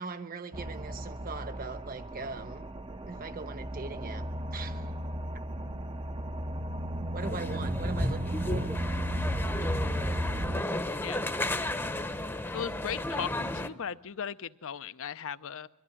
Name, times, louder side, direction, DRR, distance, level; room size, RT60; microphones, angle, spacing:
voice 1, 0.0-2.7 3.1-4.9 7.1-8.7, right 3 dB, 40° right, 10 dB, 1.1 m, -40 dB
sound 1, 0.5-10.6, right 1 dB, 25° right, 0.6 m, -36 dB
sound 2, 7.2-13.7, left 1 dB, 10° left, 0.8 m, -32 dB
voice 2, 11.0-11.3 12.5-15.7, left 7 dB, 65° left, 14 dB, 0.6 m, -37 dB
22.0 x 14.0 x 9.8 m, 1.1 s
head